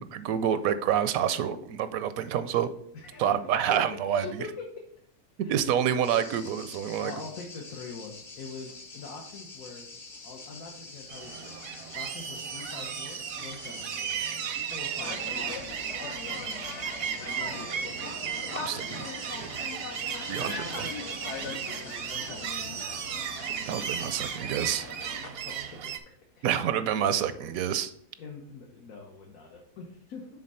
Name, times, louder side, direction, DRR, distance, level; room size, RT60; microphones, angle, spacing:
voice 1, 0.0-2.7 3.2-4.5 5.5-7.1 18.5-19.1 19.4-19.5 20.3-20.9 23.7-24.8 26.4-27.9, right 9 dB, 80° right, 12 dB, 1.0 m, -28 dB
voice 2, 2.9-3.4 3.6-3.8 4.1-4.8 5.4-5.7 7.0-9.9 10.2-11.6 11.9-14.2 14.7-15.6 15.9-16.6 17.4-17.9 21.6-22.8 25.4-25.9 26.3-26.5 28.2-30.3, left 4 dB, 75° left, 0 dB, 1.4 m, -44 dB
sound 1, 6.0-24.4, left 3 dB, 40° left, 1.0 m, -47 dB
sound 2, 11.1-26.0, right 8 dB, 60° right, 0.7 m, -35 dB
sound 3, 15.0-25.6, left 5 dB, 60° left, 1.0 m, -41 dB
6.5 x 3.7 x 5.3 m, 0.67 s
omnidirectional pair, 1.5 m